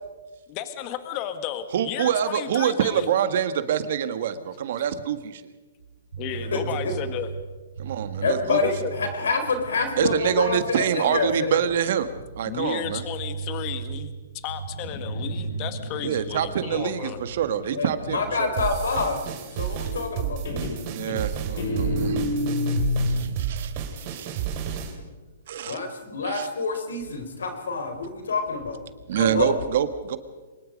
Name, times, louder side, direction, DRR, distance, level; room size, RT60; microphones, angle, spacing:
voice 1, 0.5-3.1 6.2-7.3 8.4-8.9 12.4-17.2, left 10 dB, 35° left, 10 dB, 1.7 m, -33 dB
voice 2, 1.7-5.4 7.8-8.6 10.0-12.1 12.4-13.0 16.0-18.5 20.9-22.2 23.1-24.4 25.5-25.8 26.2-26.5 29.1-30.2, right 9 dB, 60° right, 11 dB, 1.6 m, -26 dB
sound 1, 5.8-10.8 11.1-11.7 12.0-16.7 17.0-17.6 17.8-18.5, right 6 dB, 85° right, 3.9 m, -37 dB
voice 3, 6.5-6.9 8.2-11.5 17.8-19.2 19.6-20.4 25.7-28.8 29.2-29.6, left 4 dB, 85° left, 7 dB, 4.4 m, -27 dB
Guitar, 14.7-18.3 19.8-20.2 20.5-23.4, left 2 dB, 65° left, 5.9 m, -30 dB
sound 2, 18.6-25.0, right 8 dB, 40° right, 3.1 m, -31 dB
24.0 x 21.0 x 5.3 m, 1.3 s
hypercardioid pair, 140°, 0 cm